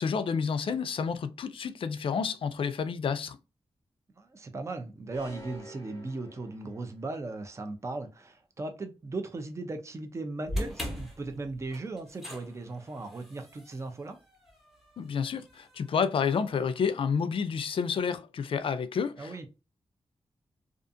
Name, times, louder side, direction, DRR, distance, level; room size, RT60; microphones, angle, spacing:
voice 1, 0.0-3.4 15.0-19.5, left 6 dB, 60° left, 0.3 m, -30 dB
voice 2, 4.2-14.2 19.2-19.5, right 2 dB, 30° right, 0.5 m, -37 dB
sound 1, 5.1-7.1, right 1 dB, 30° left, 0.9 m, -48 dB
sound 2, 10.5-16.7, equal, ahead, 0.9 m, -41 dB
2.4 x 2.4 x 2.5 m
wide cardioid pair, 105°, 10 cm